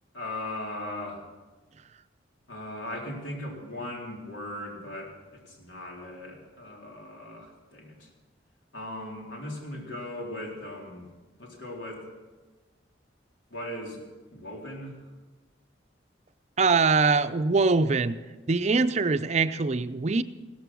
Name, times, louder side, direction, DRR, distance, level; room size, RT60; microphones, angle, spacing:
voice 1, 0.1-1.2 2.5-8.1 8.7-11.1 11.4-12.0 13.5-14.0 14.3-14.9, left 1 dB, 90° left, -1 dB, 4.2 m, -38 dB
voice 2, 16.6-18.2 18.5-20.2, right 4 dB, 35° right, 12 dB, 0.5 m, -23 dB
16.5 x 14.0 x 6.2 m, 1.3 s
head